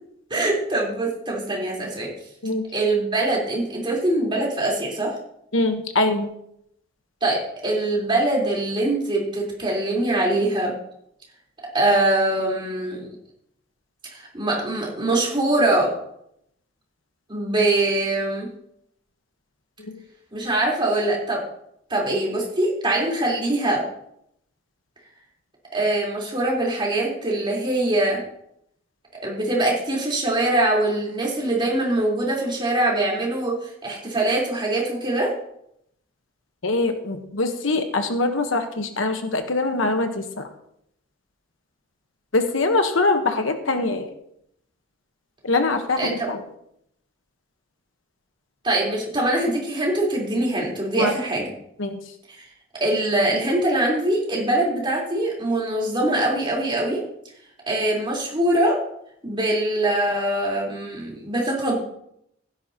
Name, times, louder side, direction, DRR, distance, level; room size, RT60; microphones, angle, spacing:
voice 1, 0.3-2.1 2.7-5.1 7.2-10.7 11.7-13.1 14.1-15.9 17.3-18.5 20.3-21.4 21.9-23.8 25.7-28.2 29.2-33.5 33.8-35.3 46.0-46.1 48.6-51.5 52.4-52.5 52.8-57.0 57.7-58.7 59.2-61.8, right 1 dB, 25° right, -3 dB, 4.0 m, -23 dB
voice 2, 5.5-6.3 19.9-20.0 36.6-40.5 42.3-44.1 45.4-46.4 51.0-51.1 51.8-52.0, left 2 dB, 75° left, 6 dB, 1.2 m, -23 dB
16.0 x 10.5 x 2.9 m, 0.75 s
head